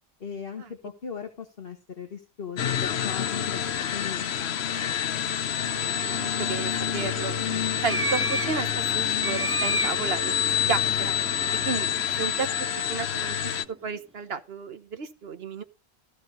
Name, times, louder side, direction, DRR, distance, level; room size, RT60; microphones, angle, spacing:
voice 1, 0.2-5.0, left 6 dB, 65° left, 1.9 m, -39 dB
sound 1, 2.6-13.6, left 9 dB, 90° left, 1.0 m, -27 dB
sound 2, 5.2-13.7, right 2 dB, 15° right, 1.1 m, -35 dB
voice 2, 5.9-7.3 7.8-10.4 10.7-11.1 11.6-11.9 12.2-12.5 12.7-15.6, right 6 dB, 75° right, 1.4 m, -32 dB
14.5 x 5.0 x 6.6 m
omnidirectional pair, 1.1 m